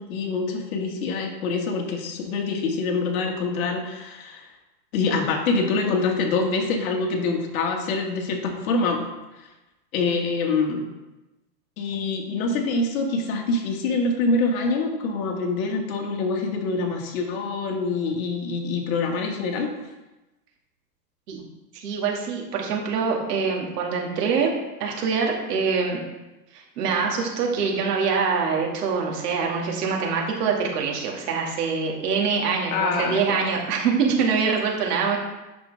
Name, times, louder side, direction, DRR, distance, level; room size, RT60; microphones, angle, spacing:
voice 1, 0.0-4.5 4.9-9.0 9.4-9.5 9.9-10.9 11.8-19.7 32.7-33.4, left 3 dB, 55° left, 2 dB, 1.8 m, -25 dB
voice 2, 21.7-26.0 26.5-35.2, right 5 dB, 65° right, -1 dB, 2.3 m, -24 dB
8.8 x 6.6 x 3.5 m, 1.0 s
hypercardioid pair, 135°, 50 cm